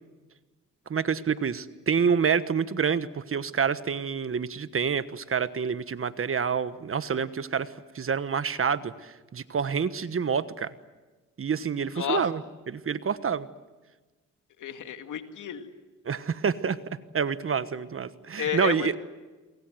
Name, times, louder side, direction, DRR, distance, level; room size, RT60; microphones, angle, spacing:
voice 1, 0.9-10.7 11.4-12.4 12.7-13.5 16.0-18.9, right 6 dB, 45° right, 13 dB, 1.3 m, -28 dB
voice 2, 12.0-12.3 14.6-15.7 18.4-19.0, left 9 dB, 75° left, 7 dB, 2.2 m, -31 dB
29.0 x 23.5 x 7.9 m, 1.2 s
cardioid pair, 65°, 31 cm